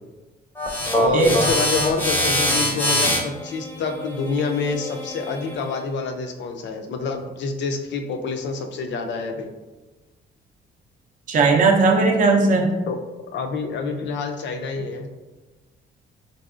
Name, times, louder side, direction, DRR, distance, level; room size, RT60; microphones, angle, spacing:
sound 1, 0.6-5.7, equal, 10° left, 0.6 m, -24 dB
voice 1, 0.9-9.5 12.9-13.0 13.3-15.1, left 4 dB, 65° left, 4 dB, 0.5 m, -27 dB
voice 2, 11.3-12.7, right 3 dB, 40° right, 1 dB, 0.5 m, -17 dB
3.3 x 2.7 x 2.4 m, 1.2 s
cardioid pair, 90°, 20 cm